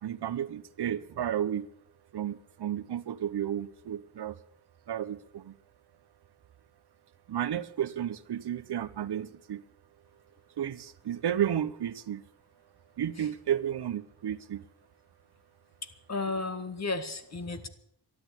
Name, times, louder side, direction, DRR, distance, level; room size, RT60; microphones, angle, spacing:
voice 1, 0.0-1.7 2.1-4.4 4.9-5.6 7.3-9.6 10.6-12.2 13.0-14.6, right 10 dB, 75° right, 14 dB, 0.9 m, -32 dB
voice 2, 16.1-17.7, left 3 dB, 40° left, 9 dB, 1.7 m, -33 dB
12.5 x 11.0 x 8.4 m, 0.71 s
wide cardioid pair, 95°, 40 cm